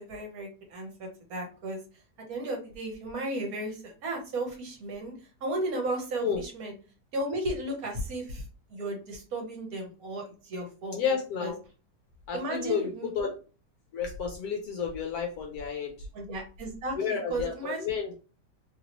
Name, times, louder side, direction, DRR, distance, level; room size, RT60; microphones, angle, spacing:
voice 1, 0.0-1.8 2.3-5.1 5.4-6.7 7.1-8.4 8.7-11.0 11.4-11.5 12.3-13.1 16.1-17.8, right 1 dB, 65° right, 1 dB, 1.2 m, -34 dB
voice 2, 10.9-11.6 12.3-13.3 13.9-16.1 17.0-18.1, left 6 dB, 70° left, 1 dB, 1.0 m, -31 dB
2.9 x 2.7 x 2.8 m, 0.36 s
omnidirectional pair, 1.8 m